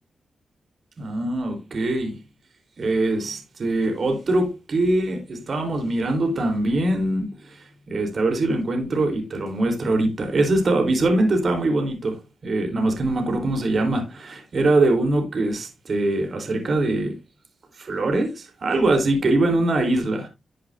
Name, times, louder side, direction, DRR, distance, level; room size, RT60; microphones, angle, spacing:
voice 1, 1.0-2.2 2.8-17.1 17.8-20.3, right 2 dB, 55° right, 3.7 m, -23 dB
12.5 x 7.8 x 2.6 m
cardioid pair, 50°, 0 cm